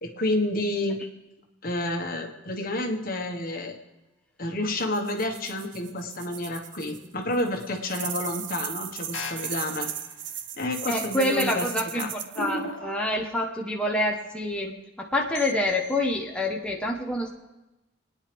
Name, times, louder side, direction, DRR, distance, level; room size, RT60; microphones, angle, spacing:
voice 1, 0.0-1.0 1.6-3.8 4.4-9.9 10.6-11.7 11.9-12.1, left 1 dB, 50° left, 3 dB, 1.5 m, -29 dB
sound 1, 4.8-7.1 7.3-12.6, right 10 dB, 65° right, 0.8 m, -36 dB
sound 2, 9.1-10.2 12.3-13.5 15.4-16.1, left 1 dB, 75° left, 1.3 m, -37 dB
voice 2, 10.9-17.3, left 1 dB, 5° left, -1 dB, 1.1 m, -27 dB
28.0 x 9.7 x 3.5 m, 1.0 s
head